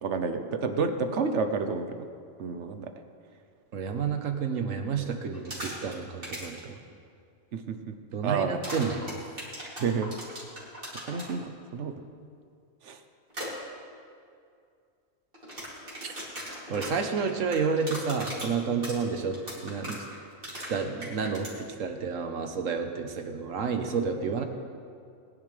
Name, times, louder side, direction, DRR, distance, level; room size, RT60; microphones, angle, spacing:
voice 1, 0.0-2.1 2.4-2.9 7.5-7.9 8.2-8.6 9.8-10.1 11.0-11.9 12.8-13.0, right 5 dB, 70° right, 8 dB, 1.1 m, -30 dB
voice 2, 3.7-6.8 8.1-9.0 16.0-16.1 16.7-19.4 19.6-20.0 20.7-24.4, right 5 dB, 90° right, 6 dB, 1.4 m, -30 dB
sound 1, 5.3-5.9 6.2-6.6 8.6-11.3 13.3-13.5 15.3-21.5, right 1 dB, 45° right, 3.4 m, -38 dB
20.5 x 10.5 x 3.4 m, 2.3 s
omnidirectional pair, 1.3 m